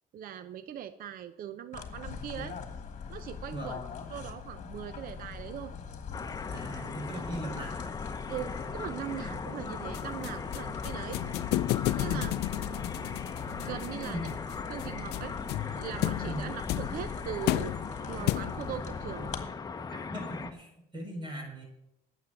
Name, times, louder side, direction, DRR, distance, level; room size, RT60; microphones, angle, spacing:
voice 1, 0.1-2.6 3.1-3.8 4.1-5.7 8.3-11.2 12.0-12.8 13.6-14.2 14.7-15.3 15.8-17.7 18.1-19.3, right 10 dB, 60° right, 12 dB, 0.7 m, -40 dB
sound 1, 1.7-19.4, left 6 dB, 45° left, 1.6 m, -43 dB
sound 2, 6.1-20.5, left 4 dB, 25° left, 0.9 m, -39 dB
voice 2, 6.5-7.7 12.0-12.3 13.9-14.3 16.2-16.5 19.9-21.6, right 1 dB, 25° right, 1 dB, 4.5 m, -39 dB
sound 3, 9.9-18.8, left 16 dB, 80° left, 0.4 m, -33 dB
9.5 x 7.5 x 7.8 m, 0.89 s
cardioid pair, 110°, 17 cm